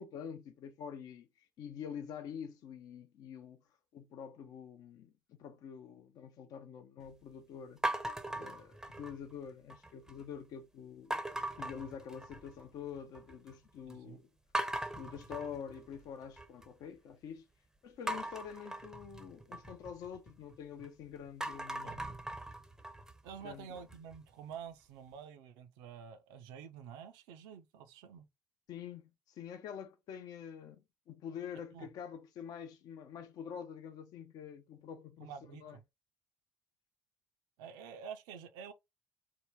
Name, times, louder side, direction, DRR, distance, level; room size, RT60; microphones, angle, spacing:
voice 1, 0.0-3.6 3.9-7.8 8.3-11.2 11.6-14.3 14.9-17.5 17.8-22.2 23.4-23.8 28.7-35.8, left 8 dB, 55° left, 0.5 m, -46 dB
sound 1, 7.8-9.3 9.7-10.2 11.1-12.6 13.0-13.5 13.9-14.0 14.5-16.7 18.1-20.9 21.3-24.2, right 1 dB, 5° right, 0.6 m, -40 dB
voice 2, 13.9-14.2 21.8-22.0 23.2-28.3 31.7-31.9 35.2-35.8 37.6-38.7, right 7 dB, 65° right, 0.6 m, -48 dB
3.7 x 2.1 x 3.3 m
figure-of-eight pair, 55°, 8 cm